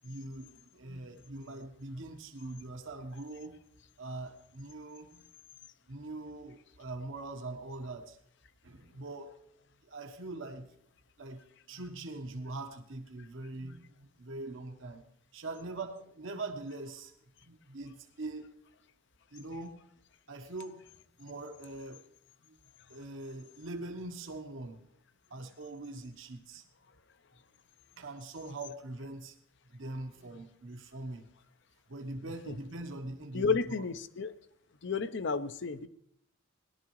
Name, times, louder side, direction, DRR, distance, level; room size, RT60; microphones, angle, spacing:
voice 1, 0.0-3.6 4.0-5.3 5.9-8.2 8.6-9.3 9.8-10.7 11.2-15.0 15.3-17.1 17.4-18.5 19.3-19.8 20.3-20.8 21.2-22.0 22.4-22.6 22.9-24.9 25.3-26.7 28.0-29.4 29.7-31.3 31.9-33.7, right 2 dB, 70° right, 4 dB, 1.1 m, -42 dB
voice 2, 33.3-34.3 34.8-35.9, left 4 dB, 60° left, 13 dB, 0.6 m, -32 dB
18.0 x 11.5 x 3.1 m, 0.66 s
head